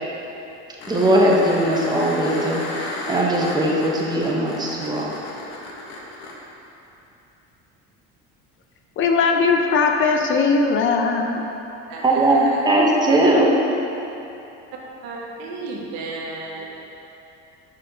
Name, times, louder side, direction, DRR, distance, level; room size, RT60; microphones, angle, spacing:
sound 1, 0.8-6.3 9.0-9.1, left 2 dB, 85° left, 1.1 m, -33 dB
voice 1, 0.9-5.1 12.0-13.5, right 1 dB, 15° right, -3 dB, 1.0 m, -19 dB
voice 2, 9.0-11.5, left 4 dB, 45° left, 3 dB, 0.6 m, -19 dB
voice 3, 11.9-13.0 15.0-16.7, right 3 dB, 80° right, -2 dB, 1.2 m, -33 dB
6.3 x 4.4 x 5.0 m, 2.9 s
supercardioid pair, 115°, 30 cm